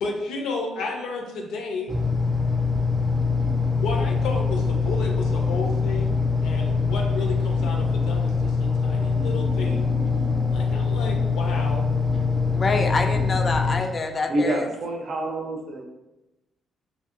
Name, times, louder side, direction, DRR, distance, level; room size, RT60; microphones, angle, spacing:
voice 1, 0.0-1.9 3.0-3.4 3.7-6.2 6.4-9.9 10.5-11.9, left 3 dB, 85° left, 1 dB, 0.5 m, -32 dB
sound 1, 1.9-13.8, left 4 dB, 10° right, 0.6 m, -23 dB
voice 2, 12.5-14.7, left 3 dB, 35° left, 5 dB, 0.3 m, -26 dB
voice 3, 14.3-15.8, right 1 dB, 55° right, 2 dB, 0.5 m, -27 dB
2.8 x 2.7 x 2.5 m, 1.0 s
cardioid pair, 90°, 0 cm